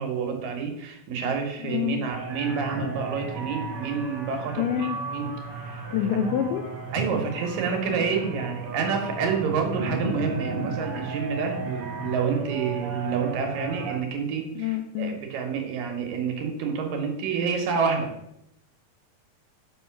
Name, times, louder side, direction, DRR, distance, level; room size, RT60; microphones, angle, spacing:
voice 1, 0.0-5.3 5.6-5.8 6.9-18.1, right 6 dB, 70° right, 3 dB, 2.6 m, -28 dB
voice 2, 1.6-2.1 4.6-5.0 5.9-6.6 14.6-15.2, left 9 dB, 85° left, 5 dB, 1.9 m, -26 dB
sound 1, 2.1-14.0, right 3 dB, 50° right, 1.9 m, -34 dB
5.7 x 5.4 x 5.8 m, 0.83 s
omnidirectional pair, 4.3 m